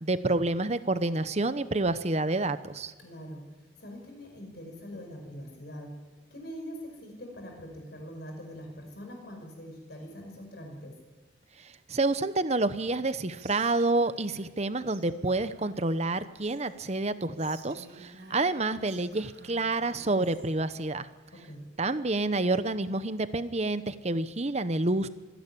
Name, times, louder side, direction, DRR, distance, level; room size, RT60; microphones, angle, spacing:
voice 1, 0.0-2.9 11.9-21.1 21.8-25.1, right 2 dB, 35° right, 12 dB, 0.9 m, -28 dB
voice 2, 3.0-3.4 3.8-5.9 6.3-11.0 21.3-21.6, equal, 60° left, 2 dB, 5.5 m, -43 dB
Whispering, 13.4-14.6 14.9-15.0 15.3-16.8 17.4-20.5, right 4 dB, 60° right, 4.3 m, -53 dB
25.0 x 11.5 x 9.9 m, 1.2 s
head